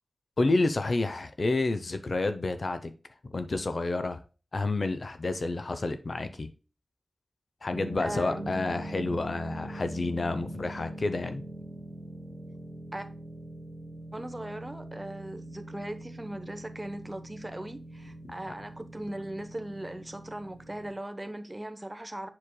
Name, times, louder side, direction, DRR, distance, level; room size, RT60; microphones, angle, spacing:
voice 1, 0.4-2.9 3.2-4.2 4.5-6.5 7.6-11.4 18.2-18.3, left 2 dB, 55° left, 0.6 m, -29 dB
sound 1, 7.7-20.9, right 1 dB, 10° left, 2.2 m, -42 dB
voice 2, 8.0-8.5 12.9-13.1 14.1-22.3, right 1 dB, 20° right, 0.9 m, -39 dB
7.5 x 6.4 x 2.2 m
wide cardioid pair, 65°, 0 cm